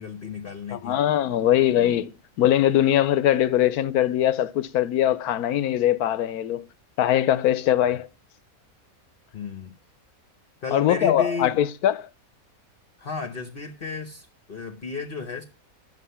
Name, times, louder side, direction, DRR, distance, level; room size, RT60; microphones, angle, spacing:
voice 1, 0.0-1.0 9.3-9.8 10.6-11.6 13.0-15.4, left 4 dB, 45° left, 1.0 m, -33 dB
voice 2, 0.7-2.1 2.4-6.7 7.0-8.1 10.7-12.1, left 11 dB, 80° left, 1.1 m, -21 dB
9.7 x 7.2 x 5.6 m
omnidirectional pair, 1.6 m